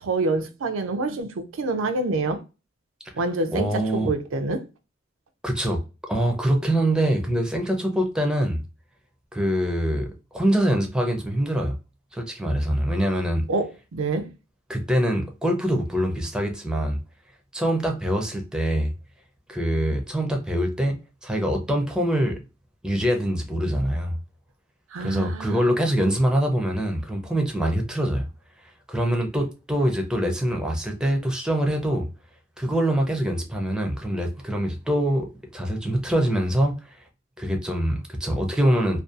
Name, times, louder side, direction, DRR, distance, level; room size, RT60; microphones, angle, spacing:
voice 1, 0.0-2.4 3.2-4.7 13.5-14.3 24.9-25.7, right 3 dB, 80° right, 0.4 m, -27 dB
voice 2, 3.5-4.1 5.4-5.8 6.1-8.6 9.3-11.8 12.1-13.5 14.7-17.0 17.5-18.9 19.5-22.4 22.8-24.2 25.0-28.3 28.9-32.1 32.6-37.0 37.4-39.0, equal, 5° right, 0.4 m, -24 dB
2.5 x 2.2 x 2.4 m
head